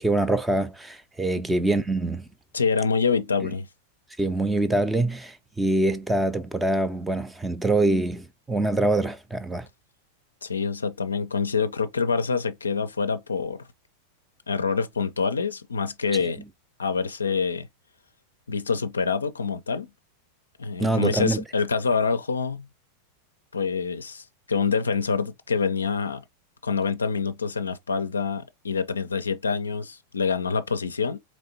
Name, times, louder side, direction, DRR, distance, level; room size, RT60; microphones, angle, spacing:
voice 1, 0.0-2.3 3.4-3.5 4.2-9.7 20.8-21.4, right 2 dB, 5° right, 0.5 m, -24 dB
voice 2, 2.5-3.7 10.4-13.6 14.5-16.4 16.8-17.7 18.5-19.9 20.6-22.7 23.5-26.2 26.6-31.2, left 5 dB, 75° left, 0.4 m, -26 dB
4.1 x 3.1 x 2.7 m
figure-of-eight pair, 90°, 0 cm